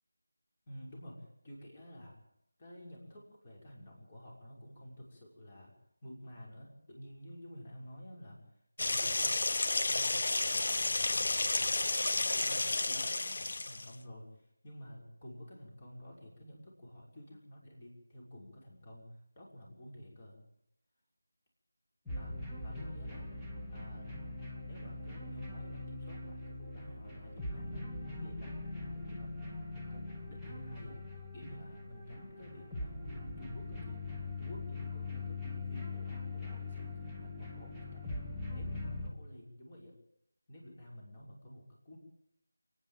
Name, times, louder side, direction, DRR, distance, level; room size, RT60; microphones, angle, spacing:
voice 1, 0.7-2.2 2.6-5.7 6.0-8.4 8.8-9.4 9.7-11.8 12.1-20.4 22.1-22.3 22.6-23.3 23.7-24.3 24.6-29.4 29.7-34.0 34.4-38.3 38.5-39.9 40.5-42.0, equal, 25° left, -1 dB, 6.1 m, -51 dB
sound 1, 8.8-13.9, left 2 dB, 45° left, 1.1 m, -31 dB
sound 2, 22.1-39.1, left 3 dB, 5° left, 2.2 m, -42 dB
30.0 x 10.0 x 9.2 m, 0.78 s
figure-of-eight pair, 165°, 0 cm